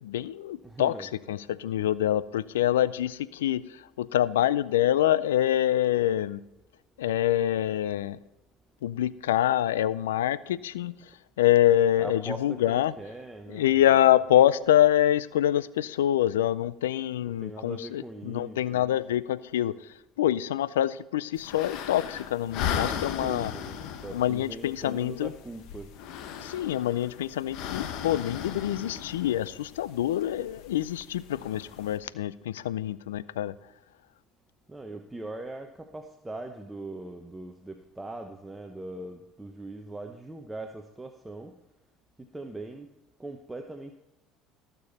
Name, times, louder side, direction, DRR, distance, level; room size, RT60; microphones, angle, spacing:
voice 1, 0.0-6.4 7.0-8.2 8.8-10.9 11.4-12.9 13.5-23.5 24.1-25.3 26.4-33.5, left 12 dB, 85° left, 19 dB, 0.4 m, -25 dB
voice 2, 0.6-1.1 12.0-13.9 17.4-18.8 22.6-25.9 26.5-26.6 34.7-41.6 42.2-42.9 43.2-43.9, right 2 dB, 10° right, 5 dB, 0.9 m, -41 dB
sound 1, 21.3-32.0, left 9 dB, 65° left, 1.0 m, -37 dB
16.0 x 6.9 x 4.1 m, 0.96 s
hypercardioid pair, 75°, 0 cm